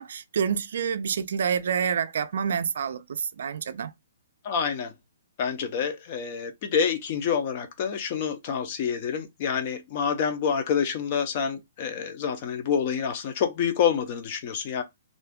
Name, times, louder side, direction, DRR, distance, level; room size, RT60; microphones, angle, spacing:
voice 1, 0.0-3.9, right 7 dB, 60° right, 0.4 m, -28 dB
voice 2, 4.4-4.9 5.4-14.8, left 7 dB, 30° left, 0.5 m, -27 dB
2.5 x 2.2 x 3.5 m
hypercardioid pair, 175°, 0 cm